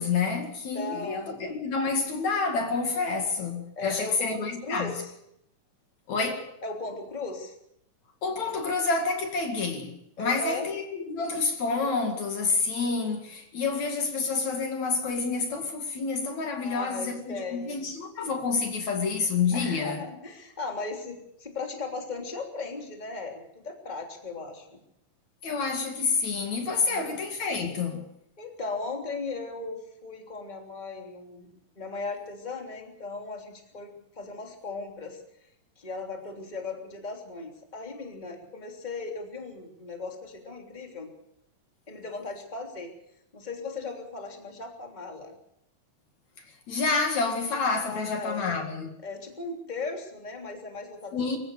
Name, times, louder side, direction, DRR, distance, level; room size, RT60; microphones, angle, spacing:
voice 1, 0.0-4.9 6.1-6.5 8.2-20.0 25.4-28.0 46.7-48.9 51.1-51.4, left 4 dB, 60° left, 3.3 m, -28 dB
voice 2, 0.7-1.6 3.8-5.1 6.6-7.6 10.2-10.7 13.7-13.9 16.6-17.9 19.5-24.8 26.7-27.1 28.4-35.2 35.8-41.1 41.9-42.9 43.3-45.3 47.8-48.5 49.0-51.4, left 3 dB, 15° left, 3.0 m, -37 dB
26.0 x 15.5 x 6.8 m
omnidirectional pair, 3.8 m